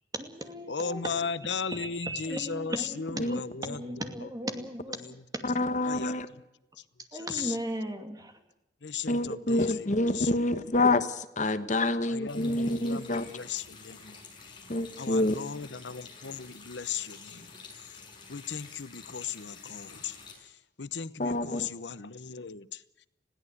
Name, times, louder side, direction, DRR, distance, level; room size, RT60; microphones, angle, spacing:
voice 1, 0.1-1.3 1.7-5.2 7.1-8.4, right 1 dB, 20° right, 6 dB, 2.5 m, -37 dB
voice 2, 0.7-3.8 4.2-4.3 5.0-5.1 5.8-6.2 6.8-6.9 7.1-7.6 8.8-10.3 12.1-14.2 14.5-14.6 15.0-17.5 17.8-18.0 18.3-23.1, left 6 dB, 85° left, 15 dB, 0.9 m, -37 dB
voice 3, 5.4-6.3 9.1-13.2 14.7-15.4 21.2-21.7, left 2 dB, 45° left, 11 dB, 1.1 m, -27 dB
Water tap faucet, 12.3-20.3, left 4 dB, 25° left, 6.0 m, -49 dB
21.0 x 16.5 x 8.2 m, 0.88 s
head